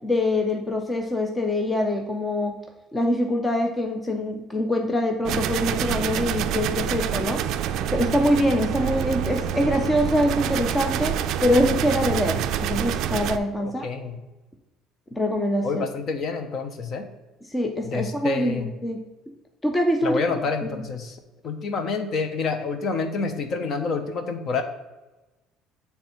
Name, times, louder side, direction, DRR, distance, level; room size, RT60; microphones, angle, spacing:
voice 1, 0.0-2.6 2.9-7.4 7.8-13.9 15.1-15.9 17.4-19.0 19.6-20.2 20.6-20.8, left 1 dB, 10° left, 4 dB, 0.5 m, -24 dB
sound 1, 5.2-13.4, right 9 dB, 60° right, 0.3 m, -27 dB
voice 2, 13.6-14.2 15.6-17.1 17.8-18.7 20.0-21.2 21.4-24.6, left 4 dB, 40° left, 7 dB, 0.8 m, -28 dB
8.3 x 3.4 x 4.3 m, 1.1 s
cardioid pair, 145°, 0 cm